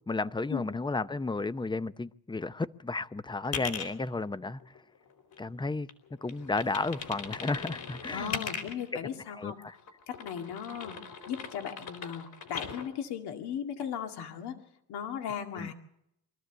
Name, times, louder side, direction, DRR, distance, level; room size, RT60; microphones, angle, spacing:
voice 1, 0.1-4.6 5.4-5.9 6.2-8.3 9.4-9.7 15.6-15.7, left 3 dB, 10° left, 0.7 m, -33 dB
sound 1, 3.4-3.9 4.5-5.6 5.9-8.9 9.7-12.9, left 6 dB, 65° left, 4.1 m, -40 dB
voice 2, 8.1-9.6 10.1-11.0 11.3-14.6 14.9-15.7, left 8 dB, 80° left, 2.2 m, -37 dB
24.5 x 13.5 x 8.1 m
cardioid pair, 85°, 39 cm